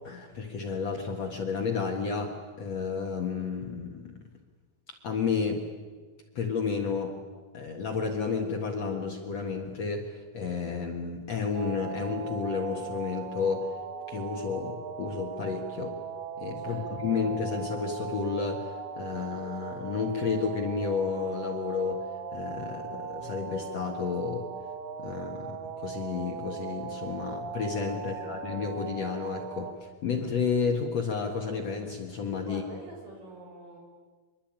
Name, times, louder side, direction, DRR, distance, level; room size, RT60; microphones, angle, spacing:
voice 1, 0.0-4.3 5.0-5.6 6.3-7.2 7.5-13.7 14.1-16.0 16.4-22.1 22.3-24.5 25.0-32.6, left 5 dB, 75° left, 2 dB, 1.5 m, -31 dB
sound 1, 11.5-29.7, right 6 dB, 70° right, 4.2 m, -39 dB
voice 2, 16.6-17.2 28.0-28.5 32.4-33.8, right 2 dB, 40° right, 1 dB, 7.6 m, -47 dB
25.0 x 22.5 x 9.1 m, 1.4 s
omnidirectional pair, 6.0 m